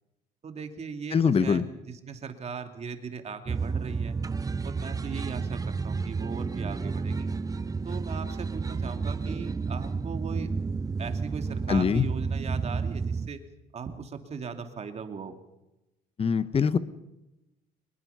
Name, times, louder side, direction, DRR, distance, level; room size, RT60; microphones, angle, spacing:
voice 1, 0.4-4.2 4.6-7.4 7.8-10.5 11.0-13.4 13.7-15.4, right 5 dB, 40° right, 7 dB, 2.5 m, -38 dB
voice 2, 1.1-1.6 11.7-12.1 16.2-16.8, left 6 dB, 35° left, 14 dB, 1.2 m, -23 dB
sound 1, 3.5-13.3, right 4 dB, 20° right, 0.7 m, -31 dB
23.0 x 21.0 x 5.7 m, 0.97 s
cardioid pair, 110°, 17 cm